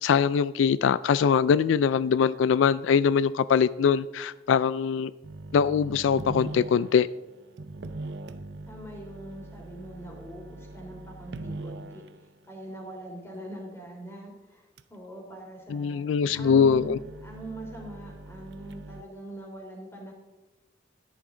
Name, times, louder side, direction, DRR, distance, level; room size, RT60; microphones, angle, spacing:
voice 1, 0.0-5.1 5.5-7.1 15.7-17.0, left 6 dB, 80° left, 0.3 m, -22 dB
sound 1, 5.2-12.3 14.8-14.9 16.1-19.0, right 2 dB, 65° right, 0.6 m, -41 dB
voice 2, 8.6-16.0 16.3-16.9 17.2-20.1, right 1 dB, 15° left, 3.3 m, -42 dB
13.5 x 11.0 x 3.8 m
head